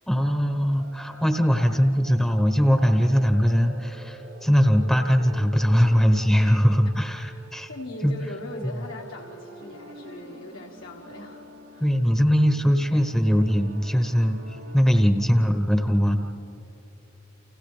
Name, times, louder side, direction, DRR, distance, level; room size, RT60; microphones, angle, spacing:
voice 1, 0.1-7.7 8.0-8.1 11.8-16.1, equal, ahead, 5 dB, 0.9 m, -21 dB
sound 1, 0.7-14.8, equal, 75° right, 6.4 m, -47 dB
voice 2, 7.7-11.4 11.7-11.9, left 2 dB, 85° left, -1 dB, 1.7 m, -39 dB
30.0 x 29.0 x 3.3 m, 3.0 s
head